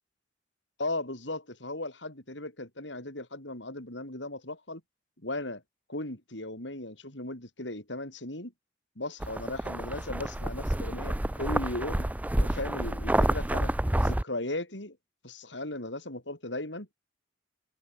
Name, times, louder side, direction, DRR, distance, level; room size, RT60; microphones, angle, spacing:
voice 1, 0.8-4.8 5.2-5.6 5.9-8.5 9.0-12.0 12.4-13.7 14.0-15.0 15.2-16.9, left 2 dB, 70° left, 7.1 m, -37 dB
sound 1, 9.2-14.2, right 1 dB, 10° right, 0.5 m, -29 dB
head